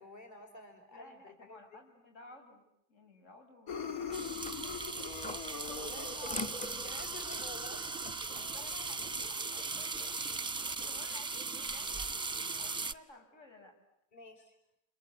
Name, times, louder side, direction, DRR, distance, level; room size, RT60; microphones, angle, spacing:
voice 1, 0.0-1.6 5.2-8.3 10.8-11.0 14.1-14.5, left 2 dB, 35° left, 3 dB, 5.3 m, -51 dB
voice 2, 0.9-4.9 8.5-10.2 10.5-13.8, left 2 dB, 65° left, 2 dB, 6.5 m, -56 dB
sound 1, 3.7-7.9, left 5 dB, 85° left, 1.8 m, -42 dB
sound 2, 4.1-9.3, left 2 dB, 15° left, 1.0 m, -46 dB
sound 3, 4.1-12.9, right 4 dB, 10° right, 1.0 m, -38 dB
29.5 x 21.5 x 8.5 m, 0.80 s
supercardioid pair, 65°, 49 cm